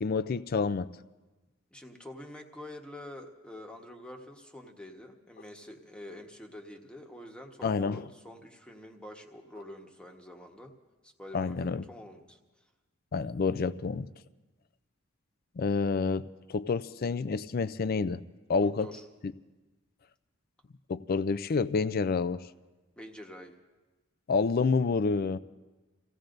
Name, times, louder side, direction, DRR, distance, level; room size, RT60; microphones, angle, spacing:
voice 1, 0.0-0.9 7.6-8.1 11.3-11.8 13.1-14.1 15.6-18.2 18.5-18.9 19.2-19.3 20.9-22.4 24.3-25.4, left 4 dB, 50° left, 15 dB, 0.4 m, -28 dB
voice 2, 1.7-10.7 11.0-12.4 18.6-19.0 23.0-23.5, left 1 dB, 5° left, 1 dB, 1.2 m, -47 dB
29.0 x 16.5 x 2.6 m, 1.2 s
head